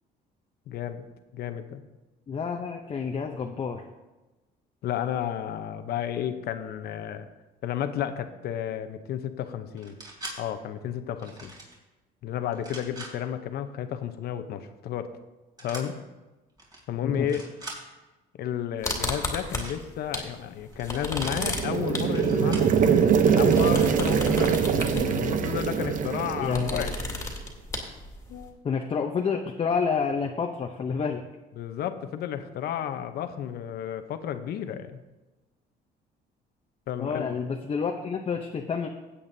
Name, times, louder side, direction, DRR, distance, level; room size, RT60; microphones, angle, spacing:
voice 1, 0.7-1.1 1.3-1.8 4.8-7.3 7.6-10.0 10.4-11.5 12.2-15.1 15.6-16.0 16.9-17.5 18.4-26.9 28.3-28.5 31.6-35.0 36.9-37.4, left 9 dB, 70° left, 9 dB, 0.8 m, -32 dB
voice 2, 2.3-3.8 17.0-17.3 26.4-26.9 28.6-31.2 37.0-38.9, left 5 dB, 35° left, 2 dB, 0.7 m, -29 dB
sound 1, 9.8-10.4 11.2-11.7 12.5-13.1 15.6-15.8 16.6-16.8 17.1-17.8 19.0-19.8 20.7-21.3 22.1-22.7 23.5-23.9, right 2 dB, 25° right, 3.4 m, -42 dB
sound 2, 18.8-20.3 20.6-28.5, left 2 dB, 15° left, 2.1 m, -34 dB
sound 3, 21.1-27.2, right 7 dB, 50° right, 0.8 m, -23 dB
16.0 x 8.4 x 2.7 m, 1.1 s
cardioid pair, 110°, 17 cm